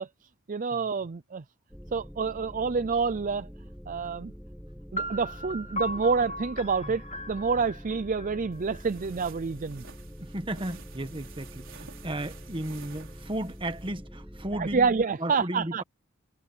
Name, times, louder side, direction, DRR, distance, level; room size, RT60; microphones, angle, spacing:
voice 1, 0.0-1.4 1.9-3.5 3.9-4.3 4.9-9.8 14.6-15.8, right 5 dB, 40° right, 0.5 m, -28 dB
sound 1, 1.7-14.9, equal, ahead, 1.3 m, -45 dB
sound 2, 5.0-8.8, equal, 35° left, 3.3 m, -37 dB
sound 3, 8.5-13.9, right 6 dB, 65° right, 4.9 m, -51 dB
voice 2, 10.2-14.9 15.2-15.8, right 1 dB, 25° right, 1.7 m, -35 dB
head